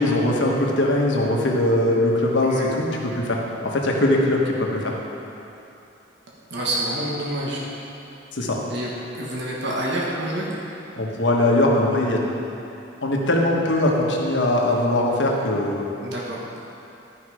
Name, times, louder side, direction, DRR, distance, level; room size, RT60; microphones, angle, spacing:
voice 1, 0.0-4.9 8.3-8.6 10.9-12.2 13.0-15.8, left 1 dB, 70° left, -1 dB, 1.3 m, -21 dB
voice 2, 6.5-7.6 8.7-10.5 16.0-16.4, right 1 dB, 65° right, -5 dB, 1.3 m, -27 dB
12.0 x 5.4 x 4.9 m, 2.8 s
head